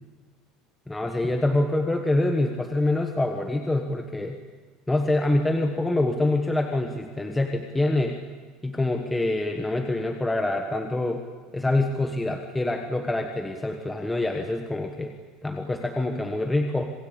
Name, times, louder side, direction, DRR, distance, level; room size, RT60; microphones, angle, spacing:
voice 1, 0.9-4.4 4.9-8.2 8.6-11.2 11.5-15.1 15.4-16.9, left 2 dB, 5° left, 4 dB, 1.3 m, -25 dB
27.0 x 21.0 x 8.7 m, 1.5 s
cardioid pair, 180°, 0 cm